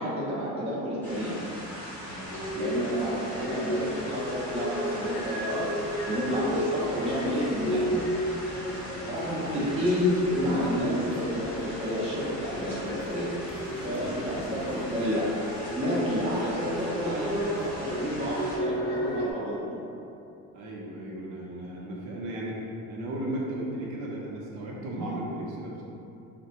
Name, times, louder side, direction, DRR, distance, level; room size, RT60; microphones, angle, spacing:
voice 1, 0.0-1.4 2.5-5.8 6.1-8.1 9.1-13.3 13.8-15.3 15.7-19.8, equal, 20° right, -7 dB, 0.5 m, -30 dB
sound 1, 1.0-18.6, equal, 5° left, 0.8 m, -40 dB
voice 2, 2.0-2.5 8.5-8.9 13.7-15.1 15.9-16.2 20.5-25.9, right 1 dB, 65° right, -4 dB, 0.7 m, -37 dB
sound 2, 2.3-19.3, equal, 90° left, 0.5 m, -34 dB
4.0 x 2.2 x 2.8 m, 2.7 s
cardioid pair, 160°, 31 cm